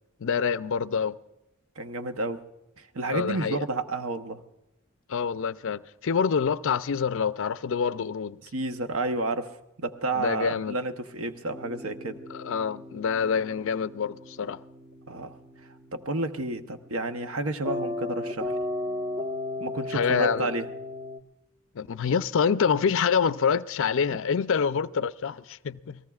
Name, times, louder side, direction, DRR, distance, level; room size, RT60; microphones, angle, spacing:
voice 1, 0.2-1.2 3.1-3.6 5.1-8.4 10.1-10.8 12.3-14.6 19.9-20.5 21.8-26.0, left 6 dB, 65° left, 0.4 m, -26 dB
voice 2, 1.8-2.4 2.8-4.4 8.5-12.2 15.1-15.3 15.9-18.5 19.6-20.7 24.1-24.2, right 2 dB, 70° right, 0.9 m, -31 dB
sound 1, 11.5-21.2, left 2 dB, 25° right, 1.0 m, -36 dB
28.0 x 18.5 x 2.4 m
head